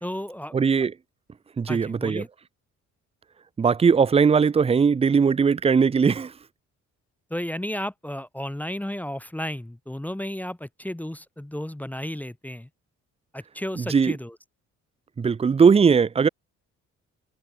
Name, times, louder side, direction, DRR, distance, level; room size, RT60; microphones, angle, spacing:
voice 1, 0.0-0.6 1.7-2.3 7.3-12.7 13.3-14.4, left 1 dB, 5° left, 1.0 m, -33 dB
voice 2, 0.5-0.9 1.6-2.2 3.6-6.3 13.8-14.2 15.2-16.3, right 6 dB, 20° right, 0.5 m, -19 dB
cardioid pair, 90°, 30 cm